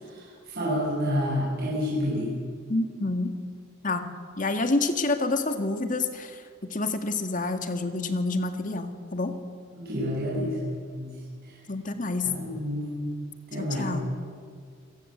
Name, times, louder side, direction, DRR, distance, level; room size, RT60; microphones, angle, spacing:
voice 1, 0.1-2.3 9.8-11.1 12.2-13.1 13.5-14.0, equal, 50° right, -6 dB, 7.7 m, -29 dB
voice 2, 2.7-3.3 3.8-4.1 4.4-6.4 6.7-9.3 11.7-12.3 13.5-14.0, left 2 dB, 40° left, 7 dB, 1.9 m, -28 dB
28.0 x 18.0 x 8.0 m, 2.1 s
head